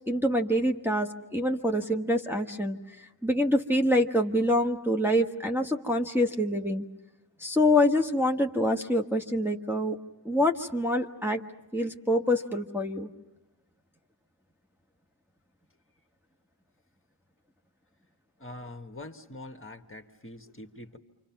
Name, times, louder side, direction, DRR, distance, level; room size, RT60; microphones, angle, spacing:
voice 1, 0.1-2.8 3.2-6.8 7.4-10.0 10.2-11.4 11.7-13.1, left 1 dB, 5° right, 0 dB, 1.3 m, -26 dB
voice 2, 18.4-21.0, left 2 dB, 30° left, 5 dB, 1.6 m, -44 dB
28.5 x 25.5 x 5.9 m, 1.0 s
wide cardioid pair, 50°, 45 cm